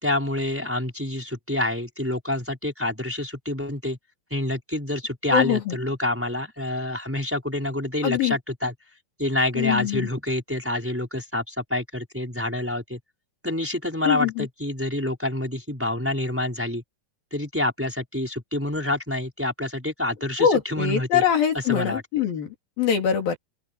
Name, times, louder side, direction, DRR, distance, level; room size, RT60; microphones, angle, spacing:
voice 1, 0.0-4.0 4.3-8.7 9.2-13.0 13.4-16.8 17.3-21.2 21.7-22.2, left 1 dB, 5° right, 4.6 m, -27 dB
voice 2, 5.3-5.8 8.0-8.4 9.6-10.1 14.1-14.5 20.4-23.4, left 8 dB, 75° left, 5.2 m, -23 dB
open air
omnidirectional pair, 4.2 m